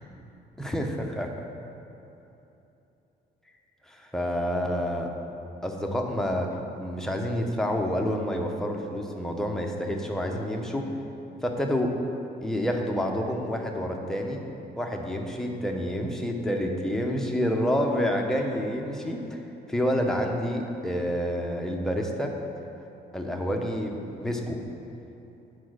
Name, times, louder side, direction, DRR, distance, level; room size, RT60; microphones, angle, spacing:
voice 1, 0.6-1.5 3.9-5.1 5.6-10.9 11.4-11.9 12.4-14.4 14.8-19.4 19.7-22.4 23.1-24.6, equal, 5° left, 1 dB, 0.7 m, -28 dB
8.4 x 4.7 x 6.3 m, 2.9 s
cardioid pair, 150°, 17 cm